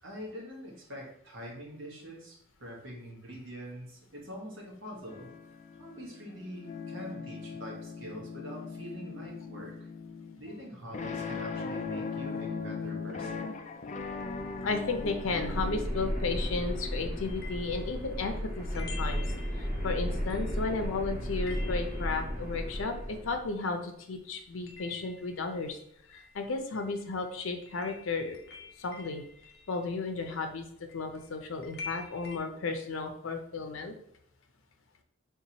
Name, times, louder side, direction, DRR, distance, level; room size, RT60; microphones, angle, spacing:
voice 1, 0.0-5.3 5.8-9.7 10.4-13.6, equal, 70° right, -3 dB, 1.4 m, -44 dB
sound 1, 5.1-15.8, left 4 dB, 35° left, 0.3 m, -39 dB
sound 2, 14.0-23.5, equal, 5° right, 1.4 m, -35 dB
voice 2, 14.6-19.2 19.5-25.8 26.1-28.4 28.8-29.2 29.7-30.6 30.9-33.9, left 3 dB, 90° left, 5 dB, 0.6 m, -34 dB
sound 3, 17.3-23.9 24.1-32.4, left 5 dB, 50° left, 0.7 m, -49 dB
4.5 x 3.5 x 2.9 m, 0.69 s
head